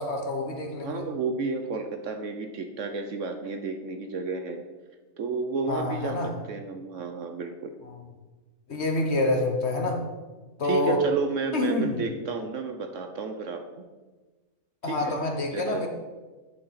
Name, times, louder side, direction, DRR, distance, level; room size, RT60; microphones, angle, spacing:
voice 1, 0.0-1.1 5.7-6.3 8.7-10.0 10.6-11.0 11.5-12.0 14.8-15.9, left 2 dB, 50° left, 3 dB, 1.2 m, -27 dB
voice 2, 0.8-4.6 5.2-7.7 10.6-13.8 14.9-15.1 15.5-15.9, right 4 dB, 65° right, 6 dB, 0.9 m, -32 dB
10.5 x 5.8 x 4.1 m, 1.3 s
omnidirectional pair, 1.6 m